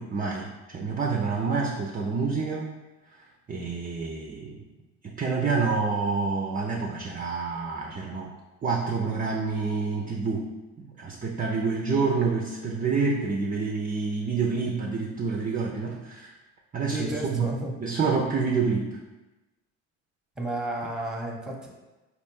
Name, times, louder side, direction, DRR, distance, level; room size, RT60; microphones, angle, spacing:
voice 1, 0.0-2.7 3.5-4.6 5.0-8.3 8.6-10.5 11.0-16.3 16.7-17.5 17.8-19.0, right 4 dB, 20° right, -1 dB, 0.5 m, -28 dB
voice 2, 16.9-17.7 20.4-21.7, right 1 dB, ahead, 0 dB, 0.9 m, -32 dB
4.1 x 2.4 x 3.7 m, 1.1 s
hypercardioid pair, 60°, 39 cm